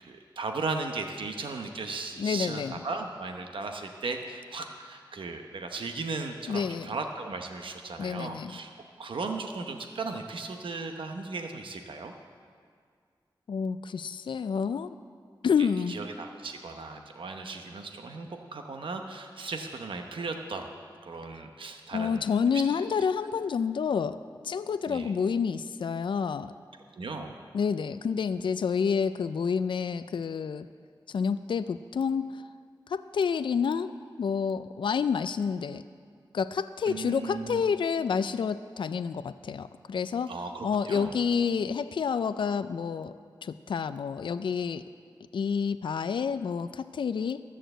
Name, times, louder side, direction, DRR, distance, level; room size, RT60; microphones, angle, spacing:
voice 1, 0.0-8.7 9.0-12.1 15.6-20.7 21.0-22.3 24.8-25.1 27.0-27.4 36.9-37.6 40.3-41.1, right 3 dB, 85° right, 4 dB, 0.8 m, -36 dB
voice 2, 2.2-2.8 6.5-7.0 8.0-8.6 13.5-15.0 15.4-16.0 21.9-24.2 24.4-26.5 27.5-30.7 31.1-32.4 32.9-33.9 34.2-35.8 36.3-40.3 40.6-43.1 43.4-44.8 45.3-47.4, left 6 dB, 75° left, 12 dB, 0.3 m, -29 dB
13.5 x 6.4 x 7.8 m, 2.1 s
wide cardioid pair, 100°, 8 cm